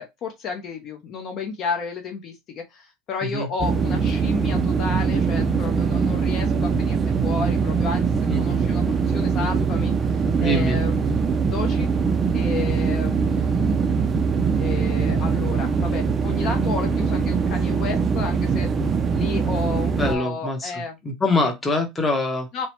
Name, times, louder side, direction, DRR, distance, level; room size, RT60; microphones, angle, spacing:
voice 1, 0.0-10.1 10.4-11.9 12.3-13.8 14.5-18.7 19.1-21.0 21.4-21.5 22.5-22.7, left 5 dB, 45° left, 0.6 m, -32 dB
sound 1, 3.6-20.2, right 5 dB, 25° right, 0.4 m, -22 dB
voice 2, 10.4-10.8 20.0-22.5, left 1 dB, 15° left, 0.8 m, -24 dB
3.0 x 2.0 x 2.8 m
supercardioid pair, 135°, 0 cm